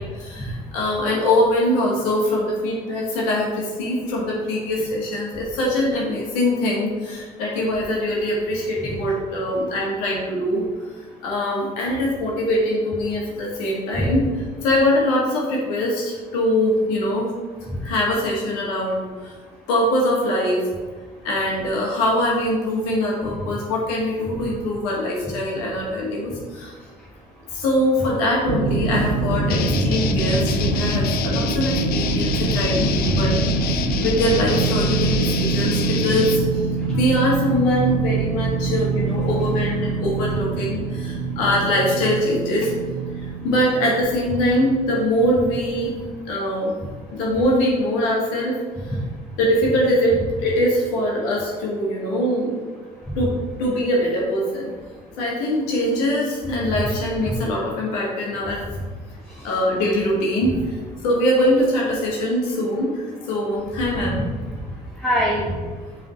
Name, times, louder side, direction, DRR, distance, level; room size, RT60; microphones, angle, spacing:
voice 1, 0.0-10.7 11.2-14.3 14.6-17.3 17.8-19.3 19.7-20.6 21.2-26.7 27.5-33.4 33.7-36.6 37.0-42.7 43.4-45.9 46.2-46.7 47.1-48.6 49.4-52.6 53.1-54.7 55.2-58.7 59.4-60.5 61.0-64.2, left 1 dB, 75° left, -3 dB, 1.6 m, -22 dB
sound 1, 28.5-45.5, right 4 dB, 50° right, 0.9 m, -24 dB
sound 2, 29.5-36.4, left 7 dB, 50° left, 0.5 m, -27 dB
voice 2, 29.5-29.9 30.5-30.6 32.9-33.3 33.7-33.9 35.7-35.8 36.8-37.0 48.9-49.1 53.1-53.2 57.3-57.4 59.3-59.5 64.1-64.2 64.6-65.7, equal, 5° left, -8 dB, 1.5 m, -26 dB
5.4 x 4.0 x 5.4 m, 1.4 s
figure-of-eight pair, 50°, 20 cm